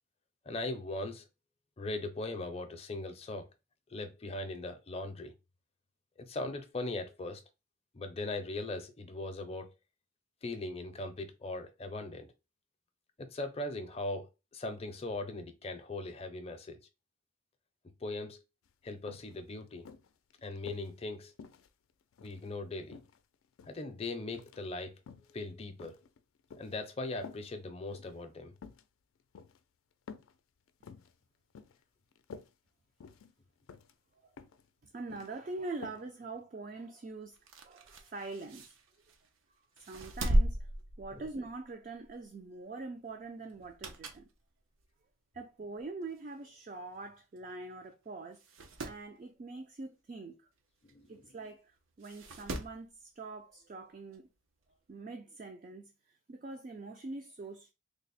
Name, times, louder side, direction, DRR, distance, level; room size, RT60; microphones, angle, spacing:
voice 1, 0.5-1.3 1.8-3.5 3.9-5.3 6.2-7.4 7.9-9.7 10.4-12.3 13.2-16.8 18.0-18.4 18.8-19.9 20.4-21.3 22.2-23.0 23.7-24.9 25.3-26.0 26.6-28.5 41.1-41.2 50.9-51.3, left 2 dB, 30° left, 0.5 m, -39 dB
sound 1, 18.7-18.8 19.1-19.3 19.9-20.9 21.4-22.5 22.9-23.8 24.3-24.6 25.0-25.3 25.8-26.8 27.2-27.5 27.9-28.2 28.6-28.8 29.3-29.6 30.1-30.3 30.7-31.1 31.5-31.8 32.1-32.5 33.0-33.3 33.7-33.9 34.4-34.7 34.9-35.3 35.8-36.0 36.4-36.5, left 5 dB, 90° left, 0.4 m, -50 dB
voice 2, 34.8-37.4 37.6-38.7 39.9-40.7 41.0-44.2 45.3-48.4 48.8-50.5 51.1-54.3 54.9-55.9 56.3-57.7, right 3 dB, 40° right, 0.3 m, -44 dB
sound 2, 37.3-39.3 39.8-41.6 42.0-42.2 43.5-44.3 44.8-44.9 45.8-45.9 46.1-46.2 46.4-46.5 47.4-47.5 47.9-48.0 48.3-49.0 50.9-51.0 52.0-52.8 54.1-54.2, right 1 dB, 85° right, 0.6 m, -35 dB
3.3 x 2.1 x 4.0 m
head